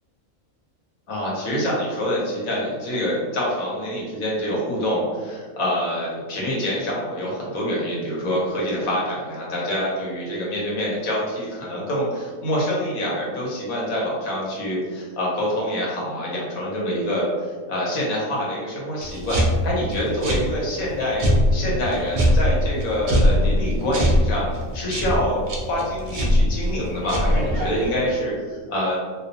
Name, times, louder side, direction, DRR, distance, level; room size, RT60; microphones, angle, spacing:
voice 1, 1.1-24.4 24.7-29.0, equal, 85° left, -5 dB, 1.3 m, -26 dB
sound 1, 19.0-27.9, equal, 75° right, 0.4 m, -22 dB
2.7 x 2.0 x 2.6 m, 1.5 s
omnidirectional pair, 1.4 m